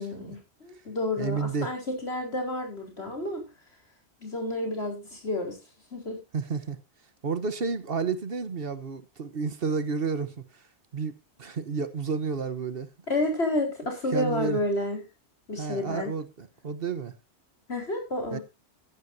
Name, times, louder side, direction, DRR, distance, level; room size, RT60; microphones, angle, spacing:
voice 1, 0.0-3.5 4.2-5.6 5.9-6.2 13.1-15.0 15.5-16.1 17.7-18.4, left 1 dB, 70° left, 4.8 m, -30 dB
voice 2, 1.2-1.7 6.3-6.8 7.2-10.6 10.9-11.1 11.4-12.9 14.1-14.6 15.6-17.1 18.3-18.4, right 5 dB, 60° right, 1.3 m, -31 dB
14.5 x 11.5 x 2.7 m
omnidirectional pair, 1.1 m